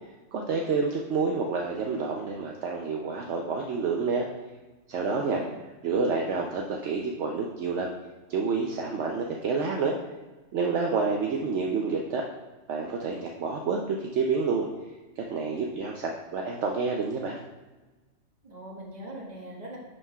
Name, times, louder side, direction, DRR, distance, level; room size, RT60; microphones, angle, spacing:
voice 1, 0.3-4.3 4.9-5.4 5.8-7.9 8.3-10.0 10.5-12.3 12.7-14.7 15.2-17.4, right 4 dB, 70° right, 0 dB, 0.9 m, -28 dB
voice 2, 5.0-5.5 18.4-19.8, right 1 dB, 35° right, -3 dB, 1.6 m, -41 dB
11.0 x 5.5 x 2.3 m, 1.2 s
omnidirectional pair, 1.3 m